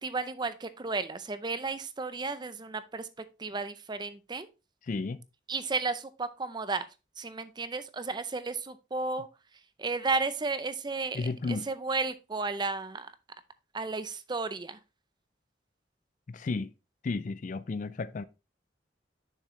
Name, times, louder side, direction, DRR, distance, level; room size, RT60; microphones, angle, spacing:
voice 1, 0.0-4.5 5.5-6.9 7.2-9.3 9.8-13.1 13.7-14.8, right 3 dB, 25° right, 0.5 m, -33 dB
voice 2, 4.9-5.2 11.1-11.7 16.3-16.7 17.0-18.2, left 3 dB, 45° left, 0.4 m, -33 dB
6.6 x 6.5 x 3.1 m
head